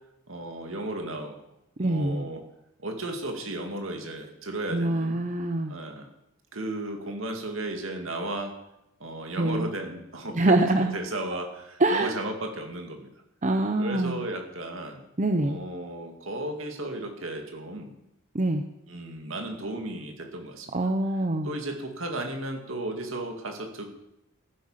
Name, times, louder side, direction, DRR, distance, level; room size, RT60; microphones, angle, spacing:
voice 1, 0.3-1.4 1.8-2.4 2.8-5.2 5.7-6.1 6.5-8.6 9.0-10.6 10.9-13.1 13.8-15.0 15.4-17.9 18.9-20.9 21.4-24.1, right 1 dB, 65° right, 4 dB, 2.4 m, -34 dB
voice 2, 1.8-2.2 4.7-5.7 9.4-9.7 10.3-10.9 11.8-12.1 13.4-14.2 15.2-15.6 18.3-18.6 20.7-21.5, right 2 dB, 35° right, 6 dB, 0.7 m, -24 dB
14.5 x 10.0 x 5.8 m, 0.87 s
head